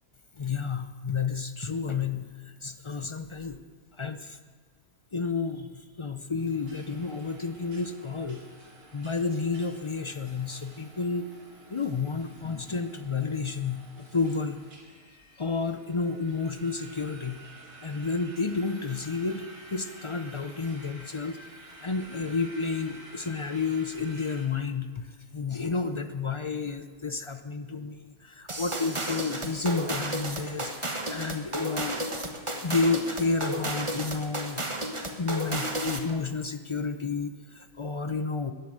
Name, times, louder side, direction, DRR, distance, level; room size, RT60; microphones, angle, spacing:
voice 1, 0.4-3.6 4.0-4.4 5.1-8.4 8.9-11.3 11.7-14.6 15.4-17.4 17.8-19.4 19.7-21.4 21.8-34.6 35.2-38.5, left 4 dB, 45° left, 9 dB, 0.3 m, -31 dB
sound 1, 6.4-24.5, right 1 dB, 85° right, 3.1 m, -50 dB
sound 2, 28.5-36.1, right 1 dB, 20° right, 1.2 m, -33 dB
13.0 x 10.5 x 7.8 m, 1.5 s
omnidirectional pair, 1.6 m